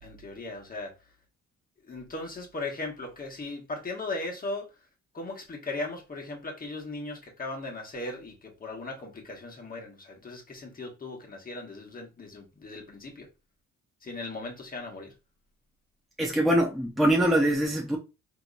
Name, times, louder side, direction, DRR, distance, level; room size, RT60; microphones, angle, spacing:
voice 1, 0.0-0.9 1.9-4.7 5.1-13.3 14.0-15.1, left 2 dB, 30° left, 1.3 m, -38 dB
voice 2, 16.2-18.0, right 1 dB, ahead, 0.7 m, -23 dB
3.5 x 2.9 x 2.5 m
cardioid pair, 90°, 30 cm